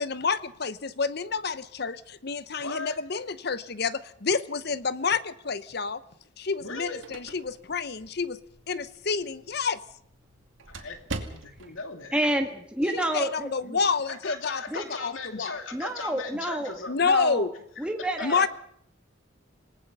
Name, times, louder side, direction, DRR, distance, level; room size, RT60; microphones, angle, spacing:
voice 1, 0.0-6.0 6.4-8.4 8.7-9.8 12.9-15.6 16.9-17.5 18.2-18.5, left 5 dB, 55° left, 15 dB, 0.8 m, -29 dB
voice 2, 2.6-2.9 6.6-7.0 10.7-11.0 11.3-12.2 14.1-17.0 18.2-18.5, left 4 dB, 85° left, 6 dB, 2.5 m, -37 dB
sound 1, 6.6-11.8, right 2 dB, 80° right, 2.5 m, -43 dB
voice 3, 12.1-13.8 14.7-14.9 15.7-16.7 17.0-17.5 17.8-18.5, right 1 dB, 5° right, 3 dB, 1.5 m, -29 dB
27.5 x 19.0 x 5.5 m, 0.68 s
head